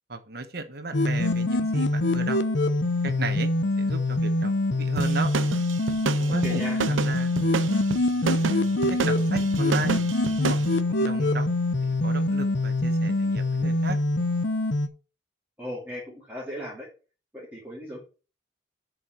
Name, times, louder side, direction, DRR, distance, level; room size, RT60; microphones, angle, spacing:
voice 1, 0.1-2.4 3.0-3.5 3.8-5.3 6.0-7.6 8.2-8.5 8.9-10.0 10.5-10.6 10.9-11.5 11.8-14.0, right 3 dB, 55° right, 8 dB, 1.3 m, -35 dB
sound 1, 0.9-14.9, left 2 dB, 75° left, 0.8 m, -24 dB
sound 2, 5.0-10.7, right 5 dB, 90° right, 0.7 m, -30 dB
voice 2, 6.3-6.8 15.6-16.9 17.3-18.0, equal, 10° right, -6 dB, 2.7 m, -36 dB
7.7 x 5.0 x 6.1 m, 0.35 s
head